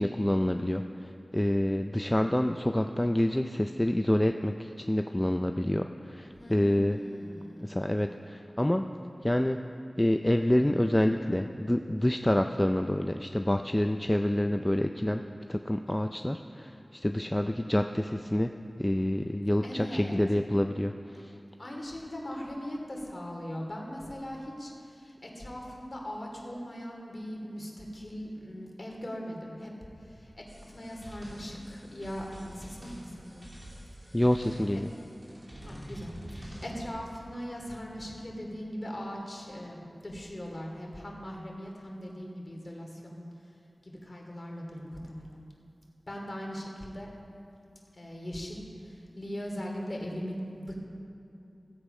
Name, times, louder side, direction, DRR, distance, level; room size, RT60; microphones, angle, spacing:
voice 1, 0.0-7.0 7.6-8.9 9.2-9.6 10.0-15.2 15.5-18.5 18.8-21.3 34.1-34.9, left 1 dB, 15° left, 6 dB, 0.4 m, -27 dB
voice 2, 6.3-7.8 19.6-20.2 21.6-29.7 30.0-30.4 30.7-33.5 34.1-34.2 34.7-34.8 35.6-43.3 43.8-45.5 46.1-47.1 47.9-50.7, equal, 45° left, -1 dB, 2.6 m, -40 dB
sound 1, 30.5-36.7, equal, 45° right, 2.9 m, -47 dB
16.0 x 8.3 x 5.4 m, 2.7 s
wide cardioid pair, 60°, 0 cm